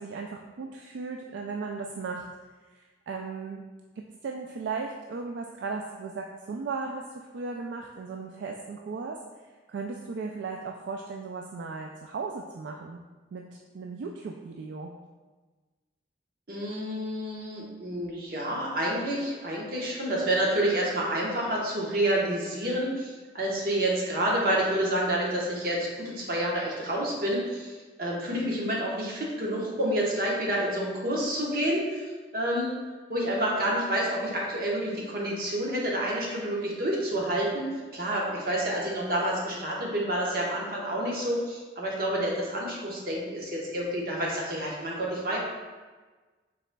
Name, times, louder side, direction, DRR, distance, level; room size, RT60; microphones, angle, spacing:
voice 1, 0.0-2.3 3.1-3.6 4.0-9.2 9.7-13.0 13.3-14.9, right 4 dB, 70° right, 1 dB, 0.3 m, -36 dB
voice 2, 16.5-32.0 32.3-32.7 33.1-37.7 37.9-45.4, right 1 dB, 50° right, -3 dB, 1.0 m, -29 dB
5.7 x 4.0 x 2.2 m, 1.3 s
head